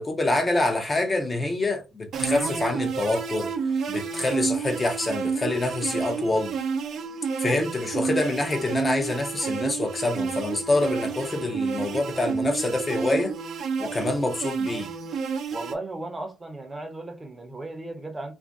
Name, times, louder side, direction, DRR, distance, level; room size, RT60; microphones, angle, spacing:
voice 1, 0.0-3.5 3.9-6.5 7.4-13.3 13.8-14.9, left 2 dB, 25° left, 0.6 m, -26 dB
sound 1, 2.1-15.7, right 5 dB, 65° right, 0.5 m, -30 dB
voice 2, 15.5-18.3, right 2 dB, 20° right, 0.7 m, -35 dB
2.5 x 2.2 x 3.4 m
cardioid pair, 90°, 0 cm